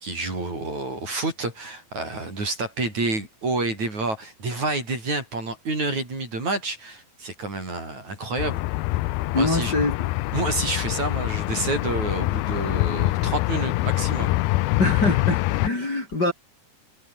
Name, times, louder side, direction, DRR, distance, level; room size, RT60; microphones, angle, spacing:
voice 1, 0.0-8.6 9.3-9.7 10.3-14.3, right 2 dB, 45° right, 9.1 m, -29 dB
sound 1, 8.4-15.7, left 19 dB, 80° left, 2.5 m, -25 dB
voice 2, 9.3-10.1 14.8-16.3, left 2 dB, 25° left, 5.6 m, -24 dB
omnidirectional pair, 4.5 m